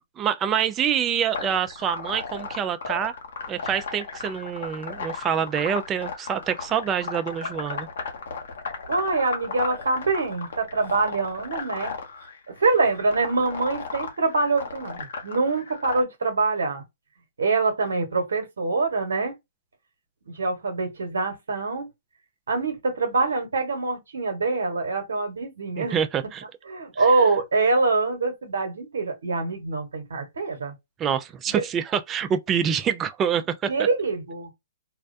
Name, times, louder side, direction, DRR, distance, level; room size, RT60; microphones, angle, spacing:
voice 1, 0.2-3.1 3.5-7.9 25.8-26.4 27.0-27.1 31.0-33.9, right 8 dB, 20° right, 0.3 m, -26 dB
sound 1, 1.3-16.0, left 5 dB, 70° left, 0.8 m, -35 dB
voice 2, 8.9-11.9 12.5-16.8 17.4-19.3 20.3-21.9 22.5-25.9 26.7-30.7 31.5-31.6 33.7-34.5, right 3 dB, 80° right, 1.0 m, -25 dB
2.2 x 2.2 x 2.5 m
hypercardioid pair, 135°, 0 cm